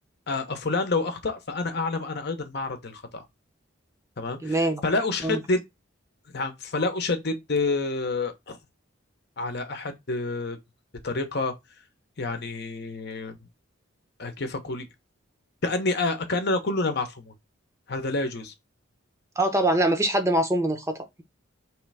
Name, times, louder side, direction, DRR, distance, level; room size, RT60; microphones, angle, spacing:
voice 1, 0.3-3.2 4.2-5.6 6.3-8.6 9.4-10.6 11.0-11.5 12.2-13.4 14.2-14.9 15.6-17.3 17.9-18.5, left 3 dB, 55° left, 0.9 m, -28 dB
voice 2, 4.4-4.8 5.2-5.4 19.4-21.2, right 1 dB, 15° right, 0.6 m, -24 dB
3.2 x 3.2 x 4.7 m
head